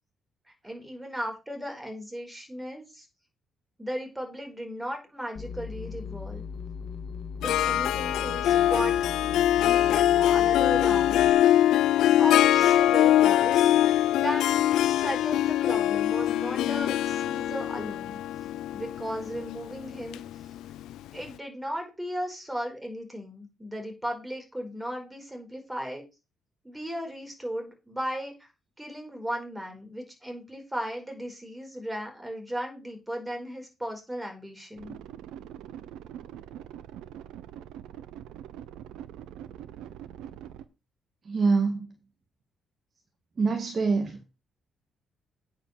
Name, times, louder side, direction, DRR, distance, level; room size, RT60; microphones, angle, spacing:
voice 1, 0.6-3.1 3.8-6.4 7.4-9.0 9.6-11.3 12.2-13.7 14.1-14.5 14.9-18.2 18.7-20.2 21.1-26.0 26.6-28.5 28.8-35.0, equal, 10° right, 3 dB, 4.7 m, -36 dB
sound 1, 5.4-11.3, left 6 dB, 60° left, 1.7 m, -38 dB
Harp, 7.4-21.0, left 12 dB, 85° left, 0.6 m, -23 dB
sound 2, 34.8-40.6, right 11 dB, 90° right, 0.9 m, -43 dB
voice 2, 41.2-41.9 43.4-44.2, right 4 dB, 40° right, 5 dB, 1.9 m, -25 dB
9.1 x 5.6 x 6.8 m, 0.28 s
cardioid pair, 90°, 0 cm